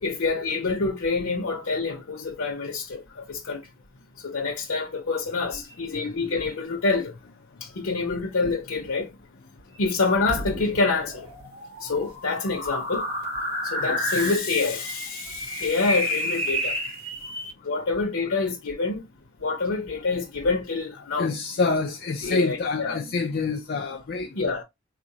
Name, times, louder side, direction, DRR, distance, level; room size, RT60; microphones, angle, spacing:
voice 1, 0.0-3.6 4.2-7.1 7.6-9.1 9.8-11.3 11.8-13.1 13.6-16.8 17.6-19.0 19.4-21.3 22.2-23.0 24.3-24.6, left 3 dB, 90° left, 0.7 m, -26 dB
voice 2, 5.9-6.3 7.5-7.6 9.7-9.8 13.8-14.0 17.2-17.3 17.6-17.7 18.3-18.4 21.1-24.4, left 3 dB, 50° left, 0.4 m, -28 dB
sound 1, 10.1-17.5, equal, 25° right, 1.7 m, -31 dB
3.9 x 2.5 x 2.7 m
head